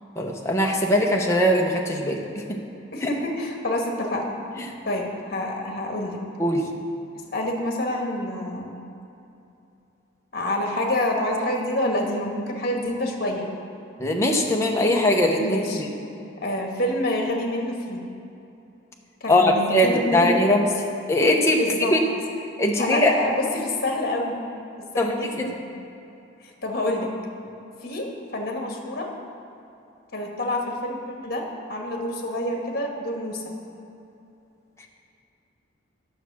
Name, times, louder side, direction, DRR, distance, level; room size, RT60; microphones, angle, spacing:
voice 1, 0.2-2.4 6.4-6.6 14.0-15.9 19.3-20.7 21.1-21.6 21.9-22.0 22.6-23.1 25.0-25.5, left 1 dB, 15° left, 0 dB, 0.8 m, -21 dB
voice 2, 2.9-4.3 4.8-6.2 7.3-8.8 10.3-13.5 15.4-15.8 16.4-18.0 19.2-20.4 21.6-21.9 22.8-24.4 24.8-25.6 26.4-27.1 27.8-29.1 30.1-33.4, left 1 dB, 50° left, 1 dB, 1.5 m, -27 dB
9.9 x 7.0 x 6.1 m, 2.8 s
head